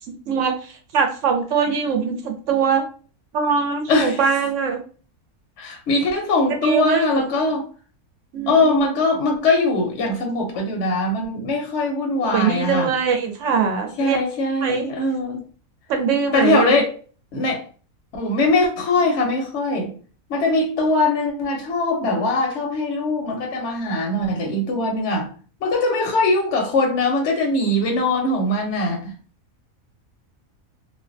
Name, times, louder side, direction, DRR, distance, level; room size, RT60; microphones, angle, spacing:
voice 1, 0.1-2.8 3.3-4.8 6.5-7.4 8.3-8.8 12.2-14.2 14.6-14.8 15.9-16.7, right 6 dB, 65° right, 0.9 m, -22 dB
voice 2, 3.9-4.2 5.6-7.7 8.5-12.9 14.0-15.4 16.3-17.0 17.3-17.6 18.1-20.0 20.3-25.3 25.6-29.1, left 2 dB, 60° left, 0.8 m, -21 dB
2.4 x 2.1 x 2.4 m
omnidirectional pair, 1.5 m